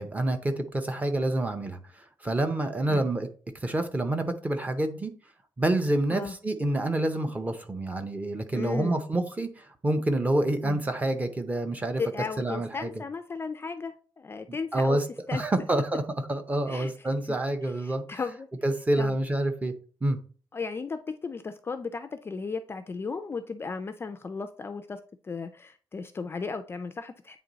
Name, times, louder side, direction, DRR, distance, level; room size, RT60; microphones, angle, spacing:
voice 1, 0.0-3.3 3.6-5.1 5.6-12.0 12.4-12.9 14.5-15.0 15.3-16.0 16.3-18.0 18.6-19.7 20.0-20.2, right 1 dB, 15° right, 0.7 m, -27 dB
voice 2, 8.5-9.0 10.6-10.8 12.0-15.0 15.3-15.4 16.7-16.9 17.3-17.4 17.6-18.5 19.0-19.2 20.5-27.4, left 4 dB, 25° left, 0.4 m, -35 dB
8.8 x 3.0 x 3.9 m
wide cardioid pair, 170°, 9 cm